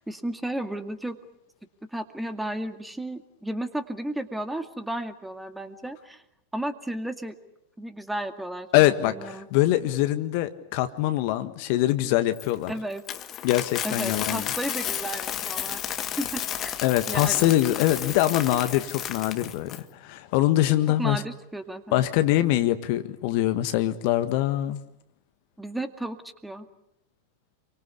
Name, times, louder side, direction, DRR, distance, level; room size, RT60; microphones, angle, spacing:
voice 1, 0.1-1.2 1.9-6.2 6.5-7.4 7.8-9.5 12.7-13.0 13.8-15.8 16.2-16.7 17.1-17.5 21.0-22.0 25.6-26.7, right 1 dB, 5° right, 8 dB, 2.1 m, -33 dB
voice 2, 8.7-12.7 13.4-14.5 16.8-21.2 21.9-24.8, left 14 dB, 45° left, 10 dB, 1.5 m, -23 dB
Coin (dropping), 12.4-19.8, left 10 dB, 30° left, 1.8 m, -32 dB
28.5 x 24.0 x 8.3 m, 0.79 s
figure-of-eight pair, 90°, 0 cm